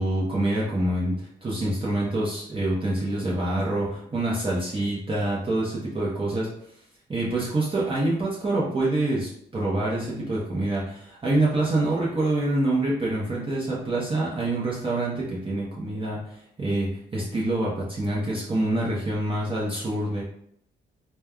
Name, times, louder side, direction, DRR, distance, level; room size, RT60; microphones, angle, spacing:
voice 1, 0.0-6.5 7.1-20.2, right 2 dB, 25° right, -6 dB, 0.8 m, -26 dB
3.3 x 2.2 x 2.3 m, 0.69 s
cardioid pair, 90°, 20 cm